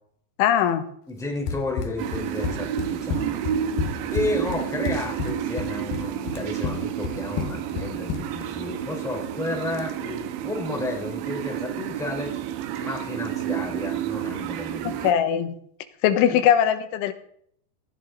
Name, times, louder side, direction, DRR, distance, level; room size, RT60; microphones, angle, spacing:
voice 1, 0.4-0.9 14.9-15.6 16.0-17.1, left 9 dB, 85° left, 9 dB, 3.6 m, -20 dB
voice 2, 1.1-3.4 4.1-15.0 16.3-16.4, left 2 dB, ahead, 0 dB, 3.2 m, -32 dB
Run, 1.5-8.5, left 6 dB, 65° left, 2.5 m, -31 dB
sound 1, 2.0-15.1, right 10 dB, 80° right, 3.3 m, -30 dB
17.5 x 17.0 x 4.0 m, 0.66 s
omnidirectional pair, 5.3 m